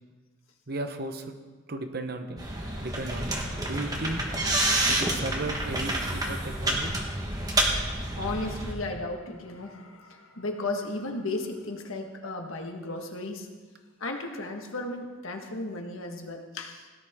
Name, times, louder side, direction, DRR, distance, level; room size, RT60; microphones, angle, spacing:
voice 1, 0.7-1.3 1.7-2.4 2.8-4.2 4.9-6.9, right 2 dB, 45° right, 7 dB, 0.9 m, -35 dB
sound 1, 2.4-8.7, right 1 dB, 20° right, 1.4 m, -28 dB
voice 2, 8.2-13.5 14.0-16.9, left 2 dB, 75° left, 3 dB, 1.5 m, -35 dB
17.0 x 11.0 x 3.7 m, 1.4 s
head